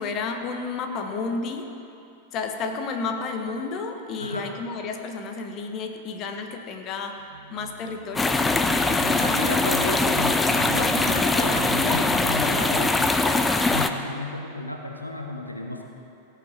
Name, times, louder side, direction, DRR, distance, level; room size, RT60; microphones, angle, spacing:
voice 1, 0.0-1.8 2.3-7.2 7.5-8.4, left 4 dB, 35° left, 5 dB, 1.1 m, -31 dB
voice 2, 4.2-4.5 9.2-15.8, left 1 dB, 85° left, 2 dB, 1.1 m, -33 dB
sound 1, 7.2-12.7, right 5 dB, 70° right, 0.9 m, -38 dB
sound 2, 8.2-13.9, left 3 dB, 10° left, 0.6 m, -22 dB
17.0 x 5.9 x 7.3 m, 2.8 s
figure-of-eight pair, 90°, 0 cm